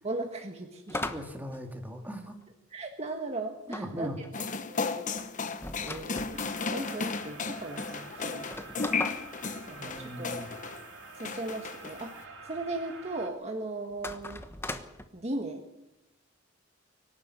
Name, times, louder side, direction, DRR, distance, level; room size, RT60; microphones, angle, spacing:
voice 1, 0.0-1.0 2.7-4.1 4.7-8.5 9.7-10.3 11.1-14.4 15.1-15.6, right 2 dB, 35° right, 3 dB, 1.6 m, -38 dB
sound 1, 0.9-2.4 3.7-6.5 7.3-7.4 7.6-7.7 8.3-10.5 13.9-15.0, left 2 dB, 10° left, 1.2 m, -39 dB
voice 2, 1.1-2.4 3.7-4.2 9.8-10.5, equal, 10° right, 4 dB, 2.1 m, -39 dB
sound 2, 4.3-10.9 11.2-12.2, left 4 dB, 40° left, 1.2 m, -34 dB
sound 3, 6.3-13.3, right 4 dB, 85° right, 3.4 m, -48 dB
24.0 x 12.0 x 9.6 m, 0.92 s
head